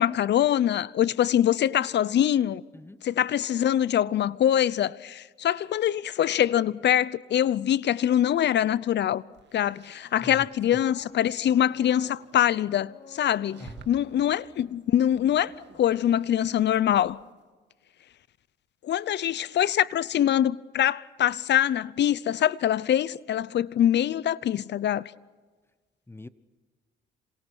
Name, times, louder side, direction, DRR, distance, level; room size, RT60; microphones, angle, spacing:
voice 1, 0.0-2.6 3.0-9.2 9.5-17.2 18.8-25.1, left 10 dB, 60° left, 0.7 m, -24 dB
sound 1, 9.1-10.6 11.0-12.4 13.3-14.3 15.3-17.4, right 7 dB, 60° right, 2.4 m, -52 dB
voice 2, 10.2-10.8 13.6-13.9 26.1-26.3, left 2 dB, 10° left, 1.0 m, -43 dB
sound 2, 10.5-16.3 16.5-16.8, left 4 dB, 45° left, 4.6 m, -53 dB
27.0 x 27.0 x 6.3 m
cardioid pair, 90°, 20 cm